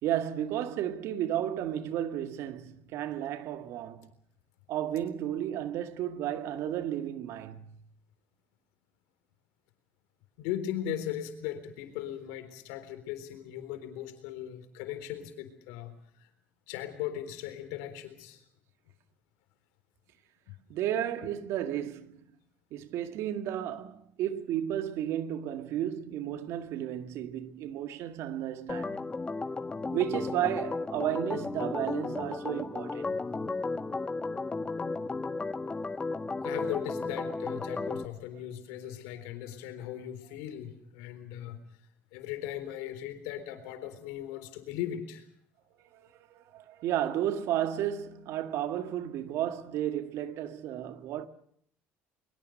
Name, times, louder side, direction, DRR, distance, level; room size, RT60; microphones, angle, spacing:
voice 1, 0.0-4.1 4.7-7.7 20.7-22.3 22.7-29.0 29.9-33.2 45.9-51.3, right 11 dB, 70° right, 1.9 m, -33 dB
voice 2, 10.4-15.9 16.2-16.3 16.7-18.4 20.5-20.6 36.4-41.6 42.1-45.3, left 11 dB, 90° left, 3.9 m, -38 dB
Organ, 28.7-38.0, left 3 dB, 20° left, 1.4 m, -34 dB
23.5 x 23.0 x 6.6 m
supercardioid pair, 100°, 5 cm